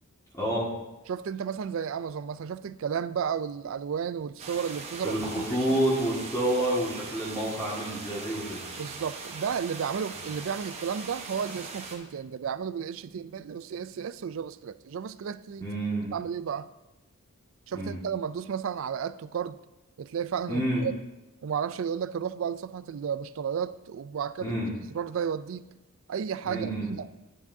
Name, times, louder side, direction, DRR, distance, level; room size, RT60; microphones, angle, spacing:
voice 1, 0.3-0.7 5.0-8.6 15.6-16.1 17.7-18.0 20.5-20.8 24.4-24.7 26.4-26.9, right 1 dB, 15° left, -6 dB, 1.8 m, -28 dB
voice 2, 1.1-5.2 5.7-5.8 8.7-15.7 16.1-16.7 17.7-19.6 20.0-20.9 21.4-24.6 24.9-25.7 26.1-27.1, right 7 dB, 60° right, 15 dB, 0.3 m, -33 dB
sound 1, 4.4-12.0, right 4 dB, 30° right, 1.0 m, -41 dB
10.5 x 9.6 x 2.7 m, 0.98 s
head